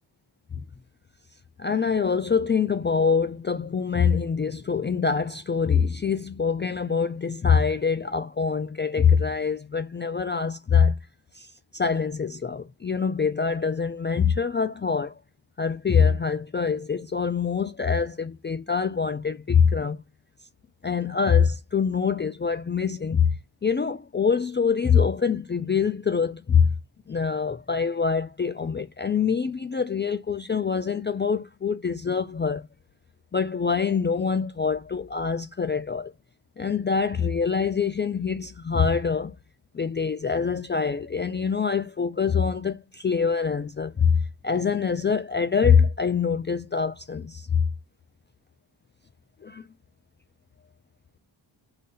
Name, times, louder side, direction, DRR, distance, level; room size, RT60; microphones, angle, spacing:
voice 1, 1.6-11.0 11.3-11.5 11.7-15.2 15.6-20.0 20.8-23.4 23.6-26.7 27.1-32.7 33.3-36.1 36.6-39.3 39.7-47.6 49.4-49.6, left 6 dB, 25° left, 0.4 m, -24 dB
4.0 x 3.2 x 3.9 m
cardioid pair, 80°, 49 cm